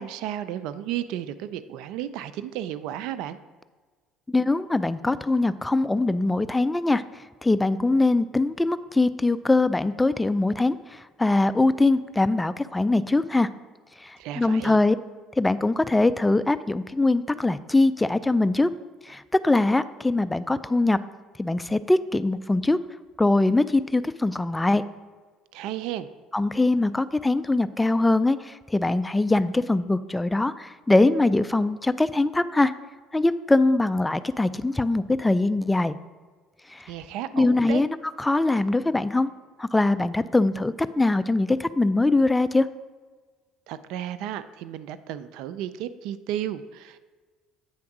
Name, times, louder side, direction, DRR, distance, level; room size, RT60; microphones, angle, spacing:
voice 1, 0.0-3.4 14.2-14.8 25.5-26.1 36.9-37.8 43.7-47.1, right 11 dB, 75° right, 14 dB, 0.3 m, -33 dB
voice 2, 4.3-7.0 7.4-13.5 14.0-15.0 15.4-18.7 19.1-21.0 21.4-22.8 23.2-24.8 26.3-32.7 33.1-36.0 36.7-36.9 37.3-39.3 39.6-42.7, left 2 dB, 10° left, 14 dB, 0.3 m, -22 dB
8.7 x 3.5 x 5.9 m, 1.4 s
supercardioid pair, 85°, 0 cm